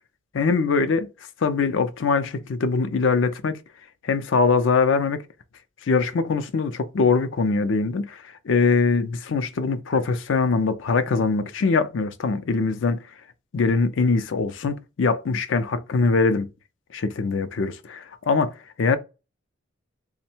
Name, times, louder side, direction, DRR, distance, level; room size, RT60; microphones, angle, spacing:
voice 1, 0.3-1.1 1.4-3.5 4.0-5.2 5.9-13.0 13.5-16.5 16.9-18.5 18.8-19.0, left 4 dB, 70° left, 0.4 m, -22 dB
3.4 x 2.1 x 4.3 m
head